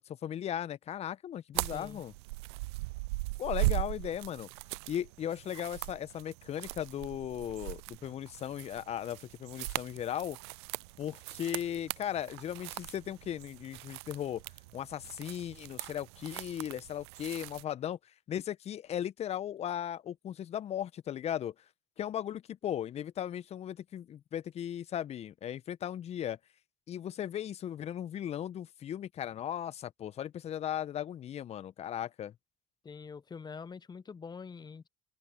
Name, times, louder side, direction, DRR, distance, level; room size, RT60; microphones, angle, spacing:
voice 1, 0.0-2.1 3.4-4.5 4.9-10.4 11.0-14.4 14.7-18.0 18.3-21.5 22.0-26.4 26.9-32.3, left 10 dB, 50° left, 1.4 m, -37 dB
sound 1, 1.5-17.6, right 23 dB, 75° right, 0.5 m, -39 dB
voice 2, 1.7-2.0 32.8-34.9, left 5 dB, 30° left, 1.3 m, -45 dB
hypercardioid pair, 55°, 14 cm